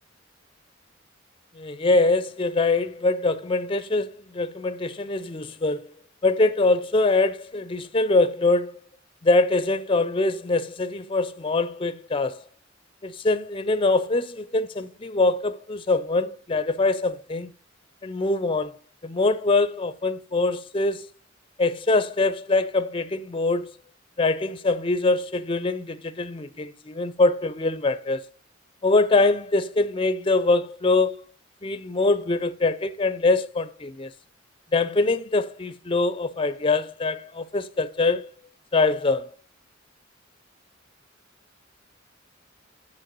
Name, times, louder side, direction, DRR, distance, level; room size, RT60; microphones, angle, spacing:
voice 1, 1.6-5.9 6.2-8.8 9.2-12.4 13.0-17.5 18.0-18.8 19.0-21.1 21.6-23.7 24.2-28.2 28.8-31.2 31.6-34.1 34.7-38.3 38.7-39.3, left 3 dB, 25° left, 0.5 m, -23 dB
7.3 x 6.5 x 6.1 m
head